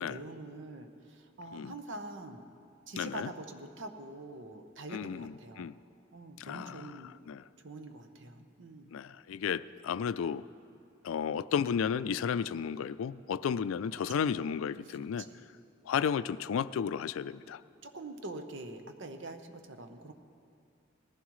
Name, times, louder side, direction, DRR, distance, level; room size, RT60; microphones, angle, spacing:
voice 1, 0.0-2.4 2.9-5.7 6.1-7.2 7.6-8.9 13.9-14.3 15.2-15.4 17.8-20.1, right 2 dB, 65° right, 6 dB, 0.9 m, -45 dB
voice 2, 3.0-3.3 4.9-5.8 6.4-7.5 8.9-10.5 11.0-15.3 15.8-17.6, left 7 dB, 90° left, 16 dB, 0.3 m, -33 dB
19.0 x 15.0 x 3.1 m, 2.5 s
head